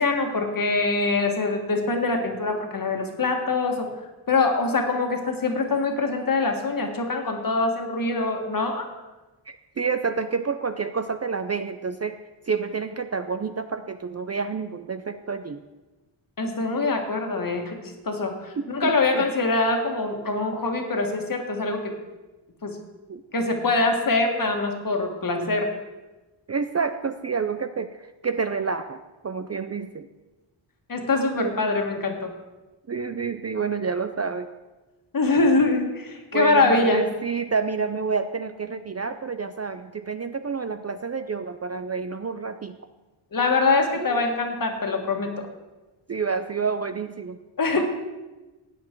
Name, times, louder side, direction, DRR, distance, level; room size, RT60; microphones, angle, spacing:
voice 1, 0.0-3.9 4.3-8.9 16.4-21.9 22.6-22.8 23.3-25.7 30.9-32.3 35.1-37.0 43.3-45.3 47.6-47.9, left 3 dB, 45° left, 4 dB, 1.7 m, -24 dB
voice 2, 9.5-12.2 12.5-15.6 18.6-19.3 23.1-23.2 25.3-25.5 26.5-30.1 31.3-31.6 32.9-34.5 36.3-42.8 43.9-44.2 46.1-47.4 47.7-47.9, right 5 dB, 35° right, 9 dB, 0.4 m, -29 dB
16.0 x 9.7 x 4.5 m, 1.1 s
wide cardioid pair, 170°, 47 cm